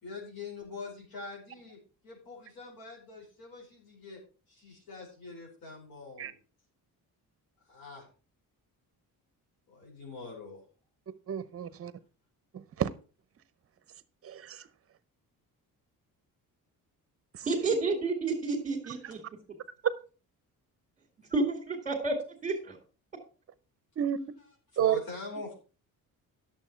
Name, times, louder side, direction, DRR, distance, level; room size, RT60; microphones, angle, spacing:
voice 1, 0.0-4.2 4.5-6.4 7.7-8.1 9.7-10.6 24.7-25.5, left 3 dB, 85° left, 5.0 m, -44 dB
voice 2, 11.3-11.9 12.5-12.9 14.2-14.7 24.0-24.2 24.8-25.0, right 10 dB, 40° right, 0.7 m, -30 dB
voice 3, 17.4-19.2 21.3-22.2 22.4-22.8, right 3 dB, 25° right, 2.1 m, -30 dB
11.5 x 7.1 x 4.5 m
cardioid pair, 165°, 35 cm